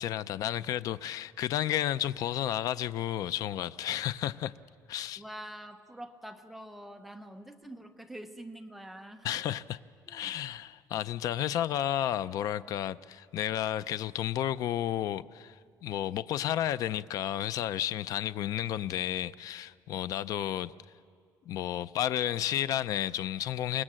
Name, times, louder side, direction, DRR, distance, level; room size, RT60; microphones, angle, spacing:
voice 1, 0.0-4.5 4.9-5.2 9.2-9.8 10.1-20.7 21.5-23.8, left 11 dB, 55° left, 15 dB, 0.5 m, -32 dB
voice 2, 5.2-9.3 10.1-10.3, right 1 dB, ahead, 5 dB, 1.0 m, -45 dB
25.5 x 20.0 x 7.6 m, 2.2 s
cardioid pair, 175°, 7 cm